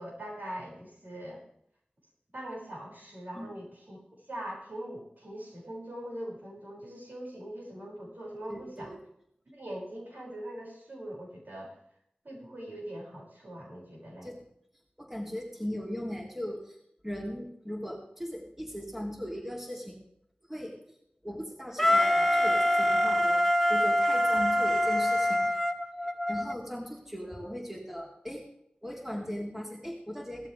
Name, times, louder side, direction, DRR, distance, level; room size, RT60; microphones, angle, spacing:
voice 1, 0.0-1.4 2.3-4.0 4.3-8.9 9.5-11.7 12.2-14.3, right 1 dB, 70° right, -4 dB, 6.2 m, -42 dB
voice 2, 8.5-9.0 14.2-14.3 15.0-16.8 17.0-20.0 20.5-20.7 21.2-25.4 26.0-28.5 28.8-30.5, equal, 10° right, -1 dB, 3.2 m, -38 dB
Wind instrument woodwind instrument, 21.8-26.5, left 1 dB, 5° left, 1.1 m, -25 dB
18.0 x 13.0 x 3.5 m, 0.71 s
wide cardioid pair, 45°, 3 cm